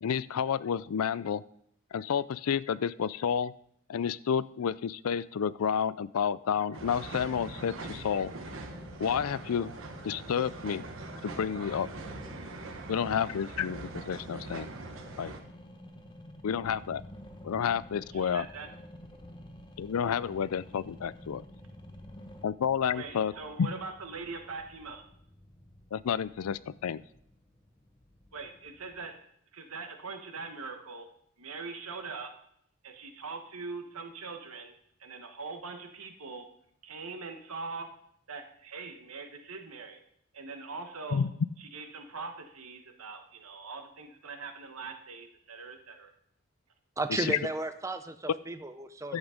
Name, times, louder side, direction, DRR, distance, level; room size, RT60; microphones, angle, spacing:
voice 1, 0.0-1.4 1.9-3.5 3.9-8.3 9.0-9.7 10.0-10.8 11.2-11.9 12.9-14.7 15.2-15.3 16.4-17.0 17.4-18.5 19.8-21.4 22.4-23.3 23.6-23.7 25.9-27.0 41.1-41.3 47.2-47.4 49.1-49.2, left 7 dB, 80° left, 19 dB, 0.4 m, -30 dB
sound 1, 6.7-15.4, right 2 dB, 60° right, 1.2 m, -43 dB
sound 2, 7.2-22.4, left 1 dB, 20° left, 1.0 m, -50 dB
sound 3, 16.6-29.1, left 1 dB, 5° left, 1.3 m, -57 dB
voice 2, 18.1-18.7 22.9-25.0 28.3-29.2 29.5-31.1 31.4-32.3 32.8-34.7 35.0-36.5 36.8-37.9 38.3-40.0 40.3-41.2 41.6-46.1, right 4 dB, 80° right, 6 dB, 1.4 m, -42 dB
voice 3, 47.0-49.2, right 2 dB, 15° right, 10 dB, 0.5 m, -34 dB
11.5 x 8.2 x 5.1 m, 0.69 s
head